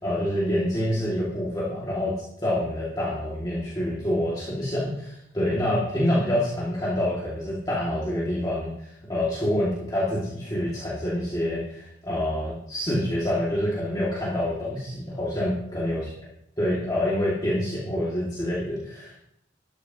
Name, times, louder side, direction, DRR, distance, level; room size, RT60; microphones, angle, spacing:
voice 1, 0.0-2.1 2.4-16.0 16.6-19.2, left 1 dB, 20° left, -8 dB, 2.4 m, -27 dB
13.5 x 11.5 x 3.0 m, 0.77 s
head